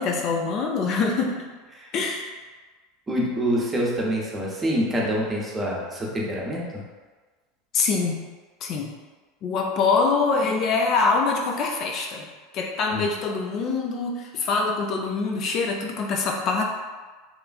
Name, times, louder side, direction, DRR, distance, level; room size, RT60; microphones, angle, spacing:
voice 1, 0.0-1.4 1.9-2.3 7.7-8.2 8.6-8.9 9.4-12.3 12.5-16.6, left 4 dB, 45° left, 0 dB, 0.3 m, -24 dB
voice 2, 3.1-6.8 12.9-13.0, equal, 20° right, -3 dB, 0.7 m, -26 dB
3.0 x 2.3 x 2.4 m, 1.4 s
figure-of-eight pair, 80°, 0 cm